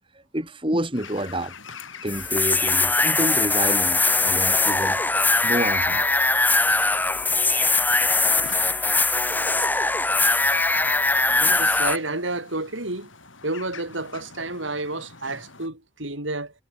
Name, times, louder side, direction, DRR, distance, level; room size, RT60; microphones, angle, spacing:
voice 1, 0.3-1.5 2.0-5.0 5.4-6.1 11.3-11.7, right 1 dB, 25° right, 5.2 m, -28 dB
sound 1, 0.9-15.7, left 5 dB, 85° left, 6.9 m, -46 dB
sound 2, 2.1-12.0, left 3 dB, 10° left, 0.8 m, -21 dB
voice 2, 11.4-13.1 13.4-16.5, right 2 dB, 80° right, 6.8 m, -30 dB
head